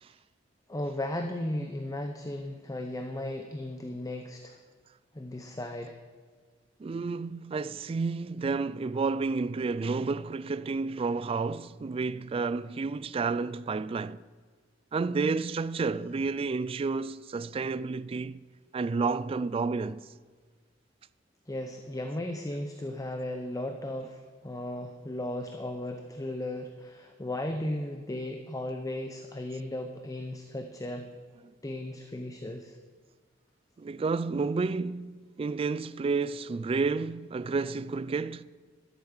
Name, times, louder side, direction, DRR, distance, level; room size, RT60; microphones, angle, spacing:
voice 1, 0.7-4.6 5.1-6.0 21.5-31.1 31.6-32.8, left 1 dB, 20° left, 0.7 m, -36 dB
voice 2, 6.8-14.2 14.9-18.4 18.7-20.1 33.8-38.4, right 4 dB, 30° right, 0.3 m, -30 dB
12.0 x 8.2 x 7.2 m
head